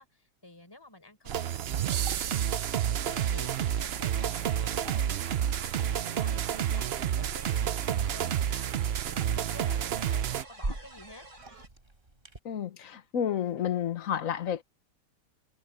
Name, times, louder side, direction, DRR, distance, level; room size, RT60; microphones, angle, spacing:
voice 1, 0.0-2.6 2.8-11.7, left 2 dB, 15° left, 4.7 m, -51 dB
Liquid, 1.3-12.4, right 2 dB, 30° right, 3.7 m, -46 dB
sound 1, 1.3-10.4, right 10 dB, 65° right, 0.6 m, -29 dB
sound 2, 3.0-11.7, right 2 dB, 85° right, 5.3 m, -51 dB
voice 2, 12.4-14.6, left 9 dB, 55° left, 1.4 m, -31 dB
omnidirectional pair, 1.8 m